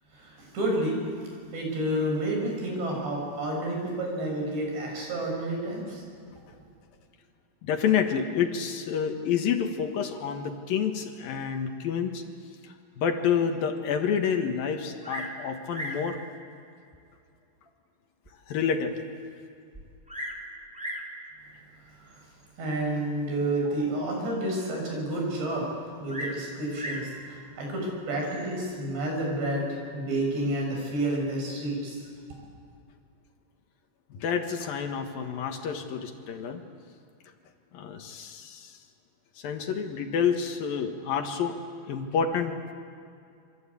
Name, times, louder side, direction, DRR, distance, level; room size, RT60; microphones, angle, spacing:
voice 1, 0.1-1.0 1.5-6.0 22.0-22.2 22.6-25.7 26.0-32.1, right 1 dB, 90° right, 0 dB, 9.0 m, -30 dB
voice 2, 7.6-12.2 13.0-16.2 18.5-19.0 34.1-36.6 37.7-38.8 39.4-41.6 41.9-42.6, left 7 dB, 65° left, 5 dB, 3.0 m, -28 dB
Bird vocalization bird call bird song, 15.0-15.4 15.7-16.1 16.9-17.0 17.7-17.8 18.3-18.4 18.6-18.7 19.7-20.4 20.7-21.1 22.1-22.4 26.1-27.1 28.2-28.6, equal, ahead, 3.0 m, -37 dB
27.5 x 25.5 x 8.5 m, 2.4 s
omnidirectional pair, 4.8 m